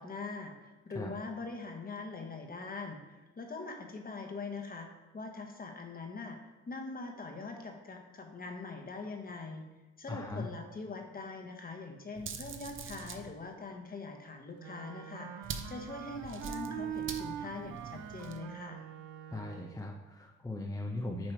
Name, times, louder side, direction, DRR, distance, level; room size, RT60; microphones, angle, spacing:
voice 1, 0.0-4.9 5.1-9.6 10.0-18.8, left 3 dB, 30° left, 4 dB, 1.1 m, -43 dB
voice 2, 10.1-10.5 19.3-21.3, left 2 dB, 10° left, -1 dB, 0.6 m, -38 dB
sound 1, 12.1-13.3 15.4-18.4, right 6 dB, 45° right, 0.6 m, -44 dB
Wind instrument woodwind instrument, 14.6-19.9, right 9 dB, 85° right, 0.6 m, -43 dB
8.6 x 3.2 x 4.5 m, 1.2 s
cardioid pair, 90°, 30 cm